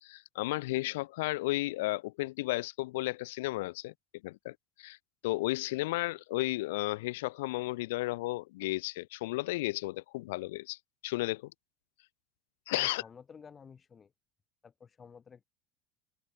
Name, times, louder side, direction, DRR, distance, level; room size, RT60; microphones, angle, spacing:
voice 1, 0.0-3.9 4.2-5.0 5.2-11.5 12.7-13.0, left 20 dB, 75° left, 1.2 m, -33 dB
voice 2, 12.7-14.1 14.6-15.4, left 6 dB, 30° left, 6.0 m, -52 dB
hypercardioid pair, 85°, 0 cm